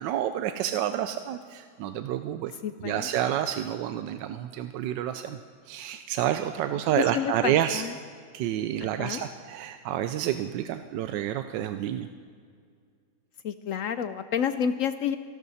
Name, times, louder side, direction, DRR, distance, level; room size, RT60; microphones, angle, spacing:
voice 1, 0.0-2.5 2.8-5.4 5.7-7.8 8.3-12.1, right 11 dB, 85° right, 9 dB, 1.3 m, -29 dB
voice 2, 2.6-3.1 7.0-7.9 8.8-9.2 13.4-15.2, left 8 dB, 75° left, 11 dB, 0.7 m, -30 dB
25.5 x 12.0 x 4.2 m, 2.1 s
omnidirectional pair, 1.9 m